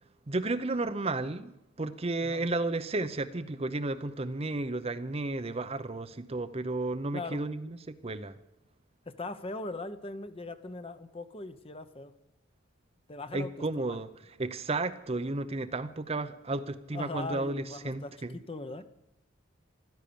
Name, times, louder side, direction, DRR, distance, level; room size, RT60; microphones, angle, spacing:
voice 1, 0.3-8.3 13.3-18.4, right 2 dB, 30° right, 11 dB, 0.7 m, -33 dB
voice 2, 9.1-12.1 13.1-14.0 16.9-18.8, left 2 dB, 25° left, 10 dB, 0.9 m, -40 dB
15.0 x 13.0 x 7.0 m, 0.87 s
head